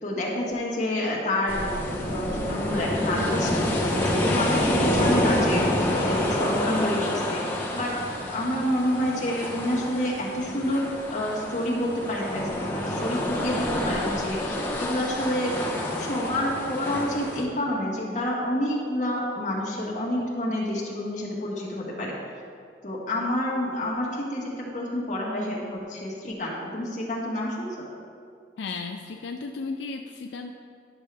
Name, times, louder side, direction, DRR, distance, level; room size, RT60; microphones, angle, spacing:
voice 1, 0.0-7.4 7.7-7.9 8.3-15.5 16.0-22.1 22.8-27.8, left 1 dB, 45° left, -4 dB, 1.7 m, -28 dB
sound 1, 1.5-17.4, left 1 dB, 10° left, 0.9 m, -28 dB
voice 2, 28.6-30.5, left 4 dB, 80° left, 4 dB, 0.4 m, -34 dB
10.5 x 6.5 x 3.4 m, 2.3 s
head